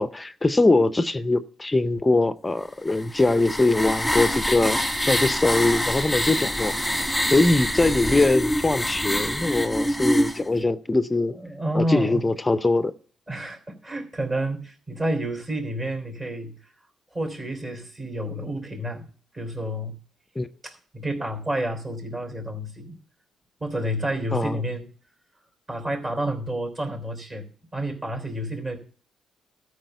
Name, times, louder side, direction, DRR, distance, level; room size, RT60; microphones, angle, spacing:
voice 1, 0.0-4.8 5.1-6.7 7.3-11.4 11.7-12.9 20.4-20.5 24.3-24.6, left 2 dB, 15° left, 0.5 m, -22 dB
sound 1, 2.9-10.4, equal, ahead, 1.5 m, -25 dB
voice 2, 11.3-12.2 13.3-16.5 17.1-19.1 19.3-20.0 20.6-23.0 23.6-24.8 25.7-28.8, right 1 dB, 30° right, 3.5 m, -29 dB
13.5 x 4.9 x 7.9 m
cardioid pair, 90°, 0 cm